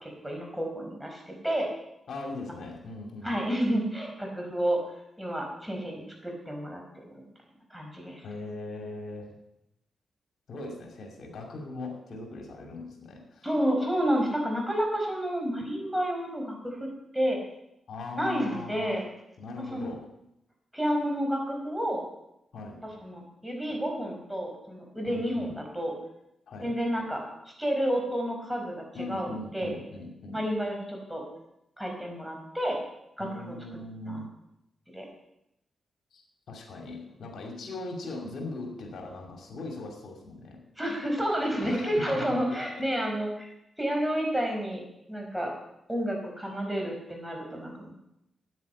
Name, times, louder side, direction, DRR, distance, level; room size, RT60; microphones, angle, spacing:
voice 1, 0.0-1.7 3.2-4.8 5.2-7.3 7.7-8.2 13.4-16.9 17.1-17.4 18.2-19.0 19.7-19.9 20.7-22.0 22.8-25.9 26.6-27.2 27.6-29.7 30.3-31.2 31.8-32.8 33.2-33.5 34.1-34.2 34.9-35.0 40.8-43.5 43.8-44.8 45.1-45.5 45.9-47.9, equal, 5° right, 1 dB, 4.6 m, -30 dB
voice 2, 2.1-3.4 8.2-9.3 10.5-13.5 17.9-19.0 19.4-20.1 22.5-22.9 25.1-25.6 26.5-26.8 28.9-30.4 33.2-34.3 36.1-36.2 36.5-40.6 41.6-42.4, left 2 dB, 75° left, 2 dB, 2.5 m, -39 dB
9.5 x 9.2 x 8.5 m, 0.83 s
cardioid pair, 75°, 0 cm